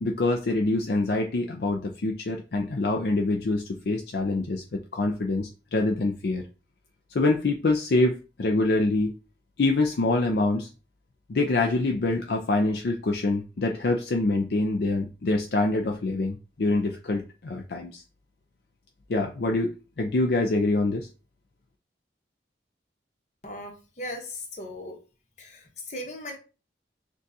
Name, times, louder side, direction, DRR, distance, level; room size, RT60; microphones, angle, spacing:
voice 1, 0.0-6.4 7.1-9.1 9.6-10.7 11.3-18.0 19.1-21.1, left 2 dB, 65° left, 3 dB, 0.5 m, -25 dB
voice 2, 23.4-25.0 25.4-26.4, left 1 dB, 40° left, 2 dB, 1.0 m, -38 dB
6.3 x 2.4 x 2.7 m, 0.32 s
head